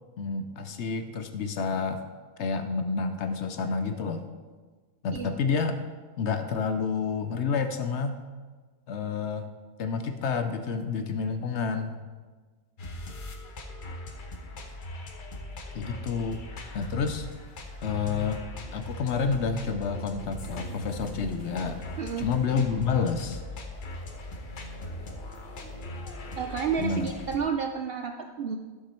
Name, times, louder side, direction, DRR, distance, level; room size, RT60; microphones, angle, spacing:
voice 1, 0.2-2.0 2.4-4.3 5.0-5.8 6.2-8.2 8.9-9.5 9.8-12.0 15.7-16.4 16.7-17.3 17.8-18.4 18.7-21.8 22.2-23.4 26.8-27.2, left 5 dB, 65° left, 8 dB, 0.8 m, -29 dB
sound 1, 12.8-27.4, left 1 dB, 40° left, 0.9 m, -40 dB
voice 2, 22.0-22.3 26.4-28.6, right 6 dB, 65° right, 4 dB, 0.6 m, -30 dB
11.5 x 6.0 x 4.3 m, 1.4 s
omnidirectional pair, 1.5 m